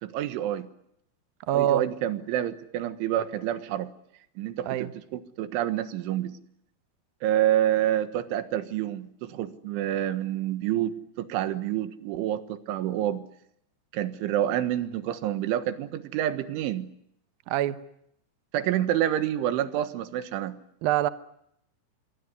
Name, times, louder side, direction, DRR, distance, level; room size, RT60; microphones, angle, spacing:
voice 1, 0.0-0.7 1.5-3.9 4.4-6.4 7.2-13.2 13.9-16.9 18.5-20.6, right 12 dB, 90° right, 4.0 m, -28 dB
voice 2, 1.5-1.8 4.7-4.9 17.5-17.8 20.8-21.1, right 12 dB, 70° right, 2.4 m, -24 dB
26.0 x 23.0 x 9.6 m
omnidirectional pair, 5.4 m